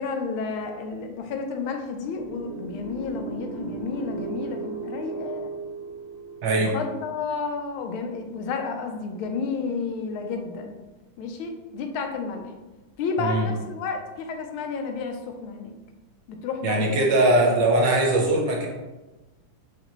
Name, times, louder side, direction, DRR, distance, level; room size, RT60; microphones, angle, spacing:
voice 1, 0.0-5.5 6.6-10.7 11.2-12.5 13.0-15.7 16.3-17.3, left 5 dB, 85° left, 4 dB, 1.5 m, -31 dB
sound 1, 2.1-7.2, right 4 dB, 45° left, 0.9 m, -36 dB
voice 2, 6.4-6.7 13.2-13.5 16.6-18.7, right 2 dB, 70° right, -1 dB, 1.2 m, -21 dB
6.6 x 2.6 x 3.0 m, 1.1 s
omnidirectional pair, 2.3 m